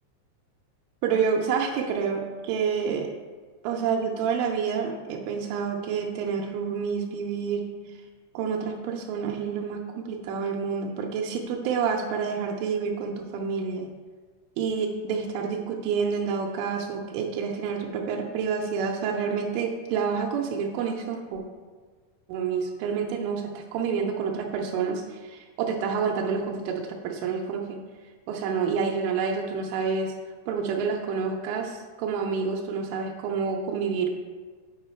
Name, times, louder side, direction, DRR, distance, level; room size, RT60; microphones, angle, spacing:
voice 1, 1.0-3.1 3.6-7.7 8.3-13.9 14.6-21.4 22.3-27.8 28.3-30.1 30.5-34.1, right 6 dB, 80° right, 2 dB, 3.0 m, -28 dB
8.2 x 4.7 x 4.4 m, 1.5 s
omnidirectional pair, 5.6 m